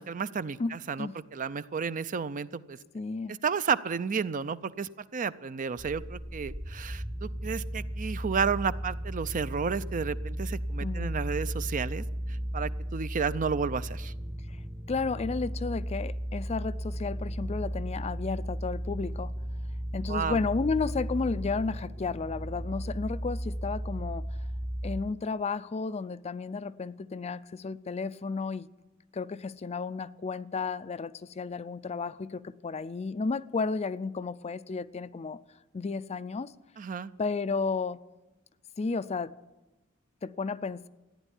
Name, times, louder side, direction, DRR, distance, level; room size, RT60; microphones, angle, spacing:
voice 1, 0.0-2.8 3.3-12.0 12.3-14.1 20.1-20.4 36.8-37.1, right 6 dB, 40° right, 0.5 m, -32 dB
voice 2, 2.9-3.4 10.8-11.2 14.5-14.6 14.9-19.3 19.9-24.2 24.8-28.7 29.1-35.4 35.7-36.5 37.2-38.0 38.8-39.3 40.2-40.9, left 4 dB, 30° left, 0.4 m, -32 dB
sound 1, 5.8-25.0, equal, 15° right, 0.8 m, -35 dB
14.5 x 10.0 x 9.9 m
head